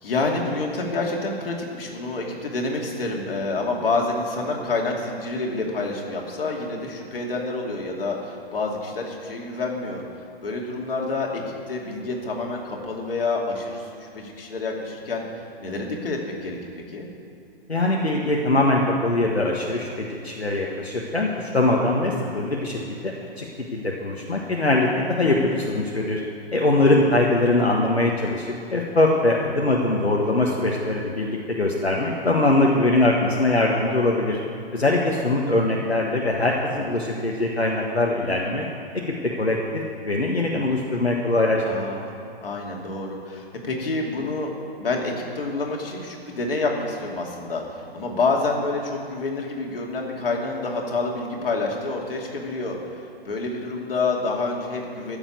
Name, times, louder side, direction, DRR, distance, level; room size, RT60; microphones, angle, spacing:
voice 1, 0.0-10.0 10.4-15.2 15.6-16.6 16.9-17.1 22.1-22.3 38.2-38.7 41.7-42.1 42.4-44.5 44.8-52.8 53.2-55.2, left 3 dB, 65° left, 0 dB, 2.6 m, -28 dB
voice 2, 17.7-23.4 23.7-26.2 26.5-34.4 34.7-38.6 39.4-41.8, left 2 dB, 85° left, -1 dB, 1.6 m, -22 dB
14.5 x 7.2 x 8.5 m, 2.6 s
figure-of-eight pair, 115°, 31 cm